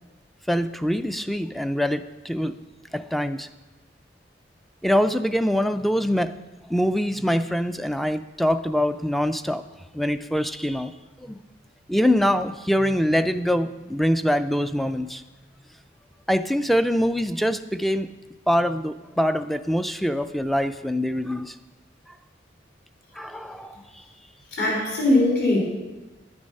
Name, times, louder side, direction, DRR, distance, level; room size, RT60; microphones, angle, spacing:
voice 1, 0.5-2.6 2.9-3.5 4.8-6.3 6.7-9.6 9.9-10.9 11.2-11.4 11.9-15.2 16.3-18.1 18.5-21.6 23.2-23.8, equal, ahead, 10 dB, 0.3 m, -24 dB
voice 2, 24.5-25.6, left 2 dB, 60° left, -4 dB, 3.9 m, -20 dB
10.5 x 9.6 x 5.4 m, 1.2 s
head